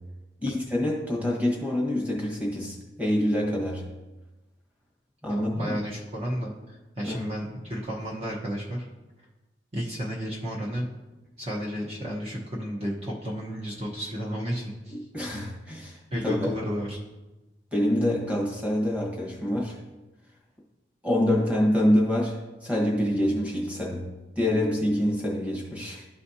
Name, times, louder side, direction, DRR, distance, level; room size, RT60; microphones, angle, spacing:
voice 1, 0.4-3.9 5.2-5.8 7.0-7.3 14.9-16.5 17.7-19.8 21.0-26.1, left 1 dB, 10° right, -2 dB, 1.3 m, -26 dB
voice 2, 5.3-8.9 9.7-10.9 11.4-15.0 16.1-17.0, equal, 35° right, -5 dB, 1.0 m, -32 dB
12.5 x 4.2 x 2.8 m, 1.1 s
head